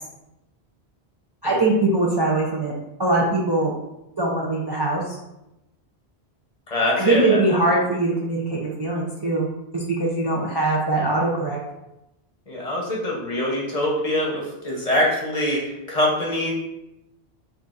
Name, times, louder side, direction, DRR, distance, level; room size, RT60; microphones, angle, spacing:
voice 1, 1.4-2.7 3.0-3.7 4.2-5.0 7.0-9.5 9.7-11.6, right 2 dB, 30° right, -4 dB, 0.5 m, -22 dB
voice 2, 6.7-7.4 12.5-16.5, left 1 dB, 35° left, -3 dB, 0.9 m, -24 dB
5.9 x 2.7 x 2.5 m, 0.89 s
omnidirectional pair, 1.1 m